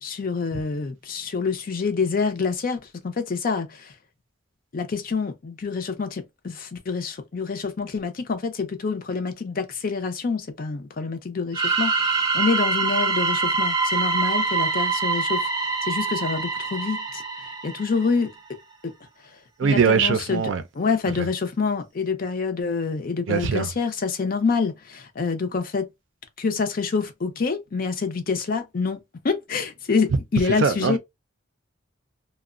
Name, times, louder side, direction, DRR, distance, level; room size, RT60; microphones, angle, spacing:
voice 1, 0.0-3.9 4.7-15.5 15.8-17.2 17.6-18.3 19.6-20.5 20.7-25.9 26.4-31.0, left 4 dB, 45° left, 0.5 m, -26 dB
sound 1, 11.5-18.2, right 4 dB, 20° right, 0.6 m, -25 dB
voice 2, 19.6-20.6 23.3-23.7 30.6-31.0, right 6 dB, 70° right, 0.4 m, -21 dB
2.9 x 2.1 x 2.4 m
head